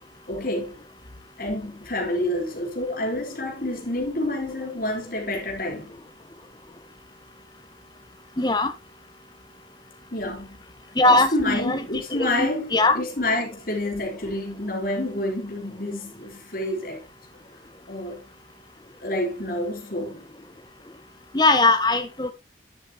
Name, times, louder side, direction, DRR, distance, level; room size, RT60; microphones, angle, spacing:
voice 1, 0.3-0.8 1.4-5.9 10.1-10.6 11.1-17.0 17.9-18.2 19.0-20.3, left 1 dB, 50° left, 3.7 m, -28 dB
voice 2, 8.4-8.7 10.9-11.8 12.1-13.0 21.3-22.3, left 2 dB, 25° left, 1.3 m, -20 dB
10.5 x 7.9 x 3.1 m
head